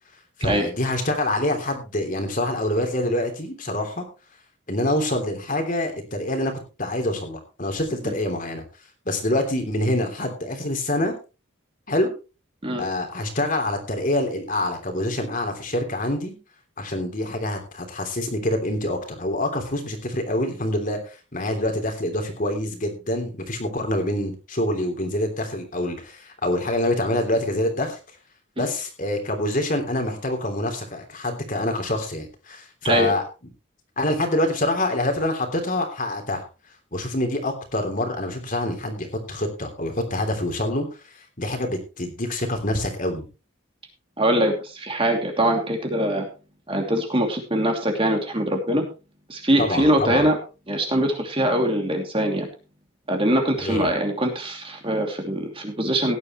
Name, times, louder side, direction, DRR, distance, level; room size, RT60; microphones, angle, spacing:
voice 1, 0.4-4.1 4.7-6.5 6.8-8.6 9.0-11.1 11.9-12.1 12.8-16.4 16.8-28.0 28.6-33.2 34.0-36.5 36.9-40.9 41.1-43.3 49.6-50.3 53.6-53.9, left 1 dB, 40° left, 5 dB, 3.2 m, -26 dB
voice 2, 44.2-46.2 46.7-48.8 49.3-50.4 50.7-52.5 53.1-56.2, right 1 dB, 25° right, 3 dB, 2.8 m, -22 dB
17.0 x 11.0 x 3.1 m, 0.32 s
head